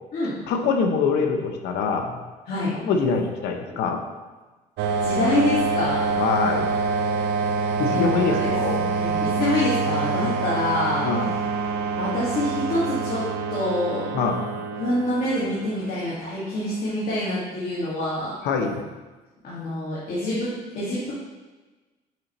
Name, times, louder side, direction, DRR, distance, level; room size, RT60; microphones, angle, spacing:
voice 1, 0.4-2.2 2.8-4.0 6.2-6.7 7.8-8.8 10.2-10.4 11.0-11.3 14.1-14.4 18.4-18.8, left 5 dB, 85° left, 4 dB, 0.8 m, -24 dB
sound 1, 4.8-16.2, right 4 dB, 80° right, 0.5 m, -26 dB
voice 2, 5.0-6.0 7.8-8.5 8.8-11.0 12.0-13.2 13.5-14.1 14.7-18.4 19.4-21.1, left 1 dB, 55° left, -9 dB, 1.9 m, -26 dB
6.1 x 5.0 x 3.0 m, 1.2 s
cardioid pair, 110°, 17 cm